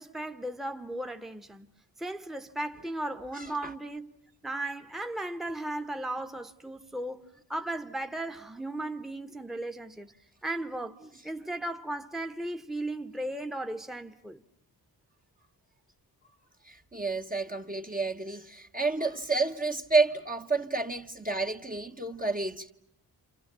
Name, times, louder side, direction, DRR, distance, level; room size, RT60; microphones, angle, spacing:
voice 1, 0.0-1.7 2.0-4.1 4.4-10.1 10.4-14.4, right 1 dB, ahead, 1.1 m, -36 dB
voice 2, 3.4-3.7 16.7-22.7, right 3 dB, 20° right, 1.2 m, -30 dB
29.5 x 28.0 x 6.8 m
cardioid pair, 85°, 39 cm